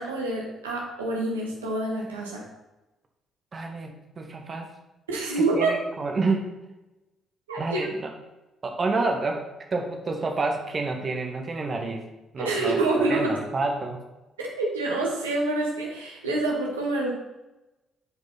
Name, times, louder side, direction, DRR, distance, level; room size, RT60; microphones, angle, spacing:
voice 1, 0.0-2.4 5.1-5.7 7.5-7.9 12.4-13.3 14.4-17.1, right 2 dB, 80° right, -2 dB, 1.3 m, -27 dB
voice 2, 3.5-4.7 5.5-6.4 7.6-8.1 8.6-12.0 12.3-14.0, right 3 dB, 35° right, 3 dB, 1.3 m, -29 dB
11.0 x 5.2 x 4.2 m, 1.0 s
figure-of-eight pair, 45°, 0 cm